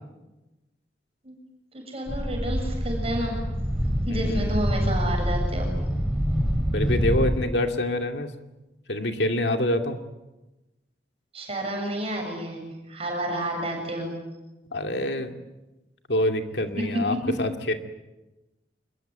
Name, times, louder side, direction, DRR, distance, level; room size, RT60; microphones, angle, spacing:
voice 1, 1.7-3.3 4.1-5.7 11.3-12.6 12.9-14.1 16.8-16.9, right 1 dB, 35° right, 2 dB, 7.5 m, -30 dB
sound 1, 2.1-7.3, equal, 5° right, 4.3 m, -26 dB
voice 2, 4.1-4.6 6.7-8.3 8.9-10.0 14.7-15.3 16.1-17.7, left 1 dB, 70° left, 5 dB, 2.5 m, -26 dB
26.5 x 22.0 x 9.3 m, 1.0 s
head